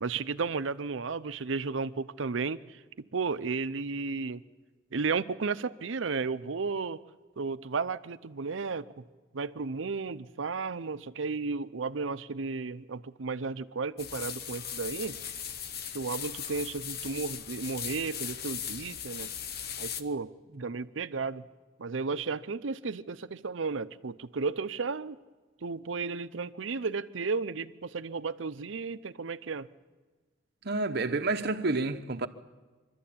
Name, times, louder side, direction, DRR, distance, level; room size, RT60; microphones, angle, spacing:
voice 1, 0.0-2.8 3.1-4.4 4.9-7.0 7.4-8.9 9.3-15.2 15.9-19.3 19.8-20.3 20.6-21.4 21.8-25.2 25.6-29.7, right 4 dB, 85° right, 0.7 m, -33 dB
sound 1, 14.0-20.0, left 8 dB, 55° left, 0.9 m, -38 dB
voice 2, 30.6-32.3, right 3 dB, 60° right, 1.0 m, -29 dB
25.0 x 13.0 x 8.6 m
head